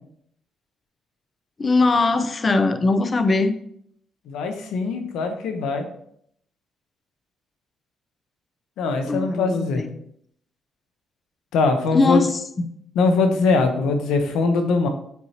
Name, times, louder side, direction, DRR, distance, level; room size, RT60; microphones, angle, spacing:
voice 1, 1.6-3.5 9.1-10.0 11.9-12.7, left 3 dB, 35° left, 9 dB, 0.7 m, -21 dB
voice 2, 4.3-5.9 8.8-9.8 11.5-12.2 12.9-14.9, left 3 dB, 85° left, 6 dB, 0.9 m, -21 dB
8.2 x 4.6 x 2.9 m, 0.69 s
cardioid pair, 90°, 0 cm